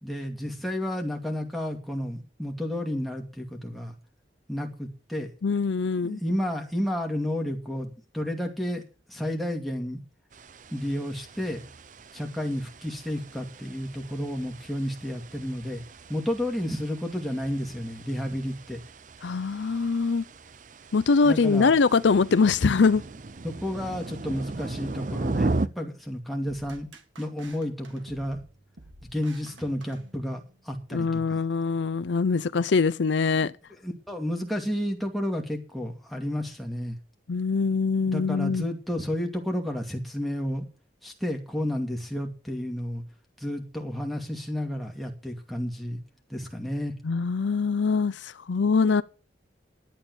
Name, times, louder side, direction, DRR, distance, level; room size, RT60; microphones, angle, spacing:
voice 1, 0.0-3.9 4.5-5.3 6.0-8.8 9.1-10.0 10.7-11.6 12.1-15.8 16.1-18.8 21.2-21.8 23.4-26.9 27.2-28.4 29.1-31.4 33.8-37.0 38.1-40.6 41.0-43.0 43.4-46.0 46.3-46.9, equal, ahead, 2.4 m, -31 dB
voice 2, 5.4-6.2 19.2-20.2 20.9-23.0 30.9-33.5 37.3-38.7 47.0-49.0, left 4 dB, 70° left, 0.5 m, -23 dB
sound 1, 10.3-25.7, right 2 dB, 40° right, 0.5 m, -37 dB
sound 2, 26.5-30.6, right 2 dB, 80° right, 2.0 m, -51 dB
11.5 x 8.9 x 7.0 m
head